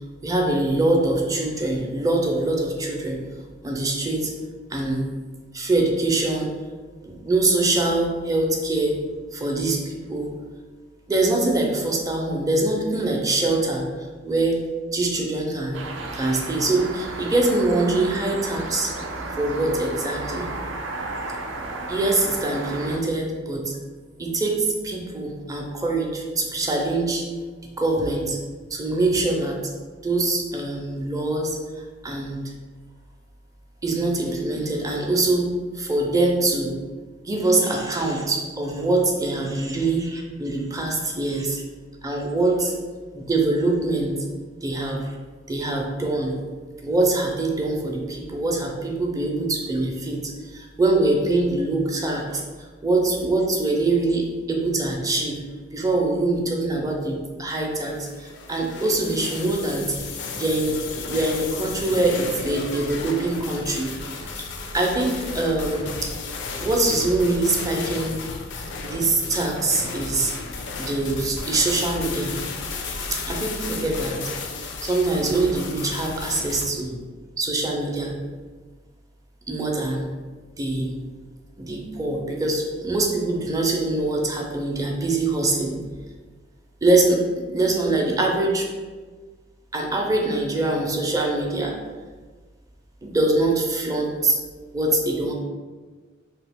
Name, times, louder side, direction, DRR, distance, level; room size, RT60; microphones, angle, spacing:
voice 1, 0.2-3.2 3.6-4.3 4.7-5.0 5.5-6.5 7.0-9.0 9.3-10.3 11.1-13.8 14.2-14.6 14.9-15.8 16.1-18.9 19.4-20.5 21.9-23.8 24.2-27.2 27.8-28.4 28.7-29.6 30.0-31.6 32.0-32.4 33.8-36.7 37.2-41.6 42.0-42.7 43.1-44.1 44.6-45.2 45.5-46.4 46.8-52.4 52.8-55.4 55.7-59.9 60.4-63.9 64.2-64.3 64.7-66.1 66.6-68.2 68.8-70.3 70.8-72.3 73.3-74.2 74.8-76.9 77.4-78.1 79.5-80.1 80.6-81.0 81.6-85.8 86.8-88.7 89.7-91.8 93.0-94.4 94.7-95.3, right 2 dB, 20° right, 0 dB, 0.5 m, -23 dB
sound 1, 15.7-23.0, right 2 dB, 85° right, 0.4 m, -33 dB
sound 2, 57.9-76.7, left 4 dB, 65° left, 0.4 m, -34 dB
2.9 x 2.7 x 3.4 m, 1.4 s
head